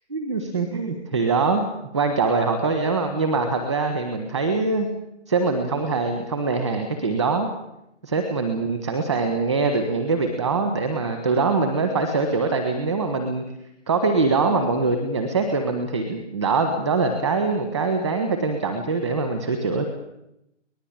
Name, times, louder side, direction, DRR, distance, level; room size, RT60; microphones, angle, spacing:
voice 1, 0.1-1.6 1.9-4.9 5.3-7.5 8.0-13.4 13.9-19.8, right 4 dB, ahead, 7 dB, 0.8 m, -23 dB
24.0 x 19.0 x 8.8 m, 0.85 s
hypercardioid pair, 165°, 36 cm